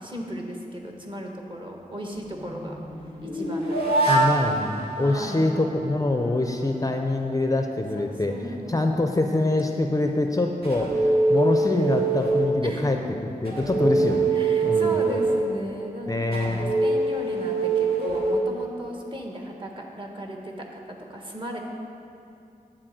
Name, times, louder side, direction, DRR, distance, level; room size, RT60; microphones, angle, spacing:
voice 1, 0.0-2.8 3.2-4.3 4.6-5.6 7.9-8.9 12.6-13.1 14.3-20.8 21.1-21.6, equal, 30° right, 1 dB, 1.4 m, -36 dB
sound 1, 2.1-6.1 10.6-12.9 13.4-19.1, right 3 dB, 85° right, 2.2 m, -25 dB
voice 2, 4.1-13.0 13.4-14.3 14.6-15.0 16.1-16.7, left 2 dB, 25° left, 4 dB, 0.5 m, -25 dB
10.0 x 4.2 x 7.6 m, 2.6 s
wide cardioid pair, 80°, 15 cm